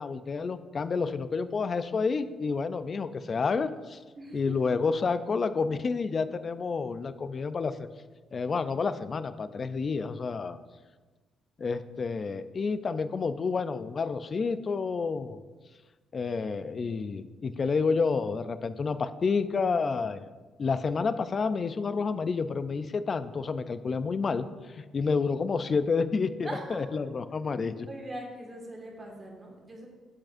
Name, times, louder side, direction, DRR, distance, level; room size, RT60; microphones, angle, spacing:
voice 1, 0.0-4.0 4.3-7.9 8.3-10.6 11.6-15.4 16.1-20.3 20.6-24.5 24.7-27.9, left 4 dB, 40° left, 12 dB, 0.4 m, -29 dB
voice 2, 4.1-4.6 26.4-26.8 27.9-29.9, right 1 dB, 25° right, -1 dB, 1.7 m, -41 dB
11.5 x 4.9 x 2.6 m, 1.3 s
cardioid pair, 90°, 0 cm